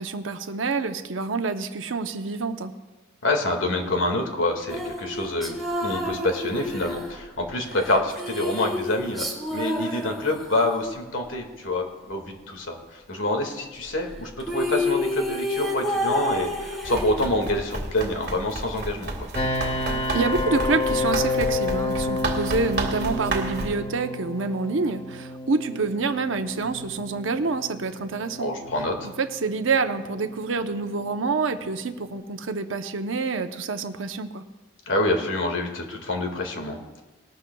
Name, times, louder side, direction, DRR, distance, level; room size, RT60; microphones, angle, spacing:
voice 1, 0.0-2.7 19.8-28.5 29.0-34.4, right 4 dB, 80° right, 7 dB, 0.8 m, -27 dB
voice 2, 3.2-19.3 28.4-29.1 34.9-37.0, left 1 dB, 75° left, 3 dB, 2.0 m, -27 dB
sound 1, 4.7-10.8 14.1-14.2 14.4-17.6, left 1 dB, ahead, 2.2 m, -29 dB
Run, 16.8-23.7, right 2 dB, 55° right, 1.8 m, -32 dB
sound 2, 19.3-32.2, left 2 dB, 30° left, 0.9 m, -31 dB
20.0 x 12.0 x 2.3 m, 1.2 s
head